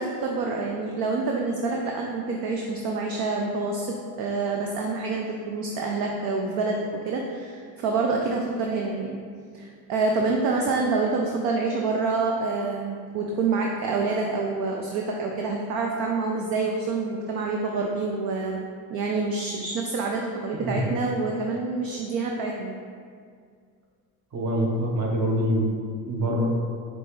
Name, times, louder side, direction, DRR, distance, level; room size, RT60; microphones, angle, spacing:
voice 1, 0.0-9.2 9.5-18.6 18.9-22.8, right 3 dB, 50° right, 0 dB, 0.5 m, -27 dB
voice 2, 24.3-25.7 26.1-26.5, equal, 35° right, -1 dB, 1.0 m, -25 dB
6.0 x 2.4 x 3.1 m, 2.1 s
hypercardioid pair, 80°, 48 cm